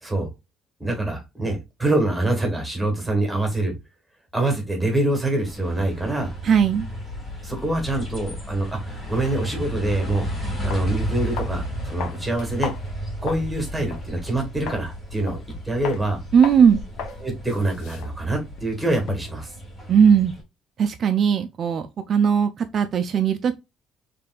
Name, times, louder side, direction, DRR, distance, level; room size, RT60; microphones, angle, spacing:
voice 1, 0.8-3.7 4.3-6.3 7.4-10.3 10.6-12.7 13.2-15.4 15.6-16.2 17.2-19.5, right 2 dB, 5° right, 1.3 m, -25 dB
sound 1, 5.4-20.4, equal, 25° left, 1.8 m, -33 dB
voice 2, 6.4-6.9 16.3-16.8 19.9-20.3 20.8-23.6, right 7 dB, 35° right, 0.4 m, -18 dB
sound 2, 10.7-10.9 11.4-11.6 12.0-13.5 13.9-14.0 14.7-14.9 15.3-15.5 15.8-16.0 16.4-16.6 17.0-17.2 17.5-19.4, left 7 dB, 75° left, 0.6 m, -35 dB
5.1 x 3.3 x 2.3 m
cardioid pair, 175°, 0 cm